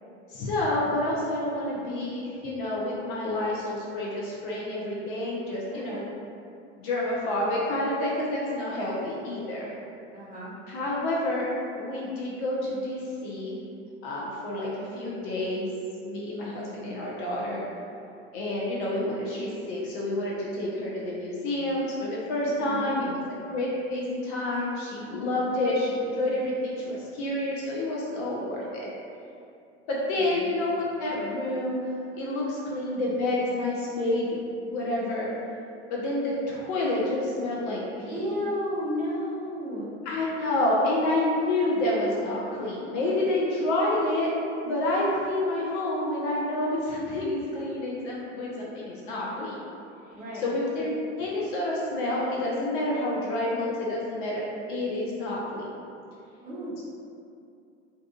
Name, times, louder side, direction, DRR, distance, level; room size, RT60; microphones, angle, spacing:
voice 1, 0.3-6.1 6.8-9.7 10.7-11.5 11.7-13.6 14.0-15.7 16.0-17.6 18.3-23.1 23.4-28.9 29.9-31.9 32.2-34.4 34.7-35.3 35.9-38.2 40.0-44.3 44.6-49.6 50.3-50.9 51.2-54.4 54.7-55.6 56.8-56.9, left 1 dB, 45° left, -4 dB, 0.5 m, -28 dB
voice 2, 10.1-10.5 22.4-23.1 30.2-30.3 38.1-39.9 50.1-50.5 56.4-56.7, equal, 20° right, -8 dB, 0.8 m, -32 dB
2.5 x 2.3 x 2.4 m, 2.5 s
figure-of-eight pair, 80°, 36 cm